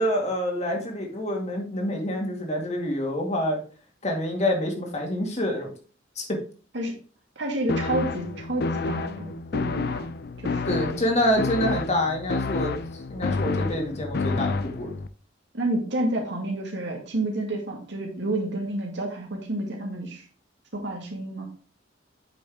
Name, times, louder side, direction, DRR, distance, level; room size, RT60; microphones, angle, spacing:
voice 1, 0.0-3.6 4.0-5.7 6.2-6.4 10.7-12.7 13.1-14.9, left 1 dB, 35° left, 1 dB, 2.0 m, -26 dB
voice 2, 7.4-10.1 10.4-10.9 15.5-20.2 20.7-21.4, right 1 dB, 65° right, 0 dB, 2.7 m, -29 dB
sound 1, 7.7-15.1, left 3 dB, 55° left, 0.6 m, -29 dB
8.7 x 6.1 x 3.5 m, 0.39 s
head